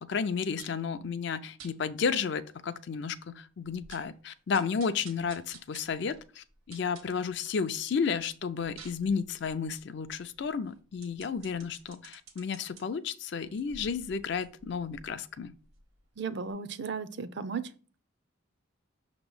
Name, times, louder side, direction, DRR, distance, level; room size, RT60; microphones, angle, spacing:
voice 1, 0.0-15.5, left 6 dB, 55° left, 0.4 m, -32 dB
sound 1, 0.6-0.9 1.6-1.7 2.3-2.4 2.7-2.8 3.2-3.3 3.6-4.2 4.5-7.6 8.0-12.8 13.4-16.1 16.5-16.6, right 4 dB, 85° right, 1.3 m, -53 dB
voice 2, 16.2-17.7, right 5 dB, 55° right, 0.4 m, -35 dB
6.2 x 3.0 x 5.3 m
head